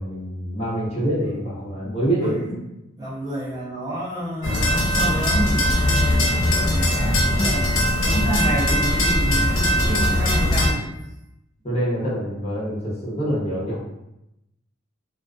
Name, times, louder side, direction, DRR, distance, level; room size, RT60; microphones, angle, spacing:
voice 1, 0.0-2.6 11.6-13.8, right 1 dB, 30° left, -7 dB, 0.8 m, -25 dB
voice 2, 2.0-2.5 3.0-7.8 8.0-10.8, right 1 dB, 20° right, -9 dB, 0.6 m, -29 dB
sound 1, 4.4-10.7, left 1 dB, 70° left, 0.6 m, -20 dB
2.3 x 2.3 x 2.3 m, 0.87 s
head